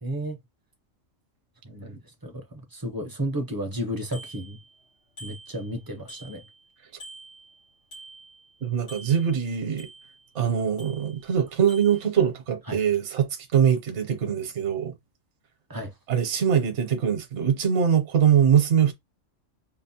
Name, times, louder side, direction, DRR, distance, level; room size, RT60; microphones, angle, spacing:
voice 1, 0.0-0.4 1.6-4.6 5.2-6.4 12.7-12.8 15.7-15.9, equal, 25° right, 0.5 m, -33 dB
Bicycle bell, 4.1-4.9 5.2-6.7 7.0-8.6 8.9-10.3 10.8-11.4 11.7-12.1, right 1 dB, 85° left, 2.8 m, -47 dB
voice 2, 8.6-9.9 10.3-14.9 16.1-18.9, right 8 dB, 65° right, 1.1 m, -23 dB
5.6 x 2.1 x 2.7 m
omnidirectional pair, 1.3 m